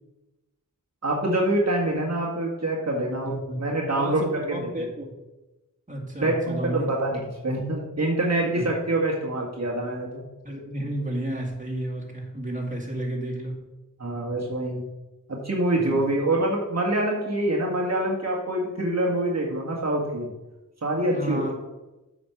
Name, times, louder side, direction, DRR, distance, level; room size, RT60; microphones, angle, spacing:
voice 1, 1.0-4.7 6.2-7.2 7.4-10.2 14.0-14.8 15.3-20.3 20.8-21.4, right 1 dB, 50° right, -3 dB, 1.8 m, -25 dB
voice 2, 3.2-3.6 4.0-5.1 5.9-6.9 8.5-8.7 10.4-13.7 15.7-16.2 21.1-21.6, right 1 dB, 25° right, 0 dB, 2.2 m, -32 dB
8.1 x 5.0 x 5.8 m, 1.0 s
cardioid pair, 45°, 34 cm